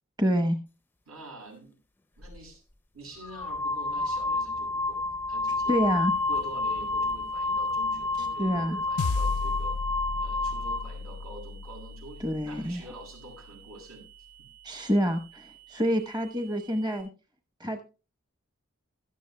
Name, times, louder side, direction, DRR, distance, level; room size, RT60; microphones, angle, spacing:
voice 1, 0.2-0.6 5.7-6.1 8.4-8.8 12.2-12.8 14.6-17.1 17.6-17.8, equal, 20° right, 6 dB, 0.9 m, -27 dB
voice 2, 1.1-1.8 2.2-2.6 2.9-5.7 6.2-9.7 10.1-14.1, right 2 dB, 80° right, 1 dB, 7.8 m, -46 dB
sound 1, 2.2-2.4 3.2-10.9, left 3 dB, 10° left, 0.5 m, -29 dB
sound 2, 5.6-17.0, right 14 dB, 55° right, 6.0 m, -54 dB
sound 3, 9.0-13.6, left 4 dB, 85° left, 0.5 m, -34 dB
16.5 x 12.5 x 2.2 m, 0.32 s
head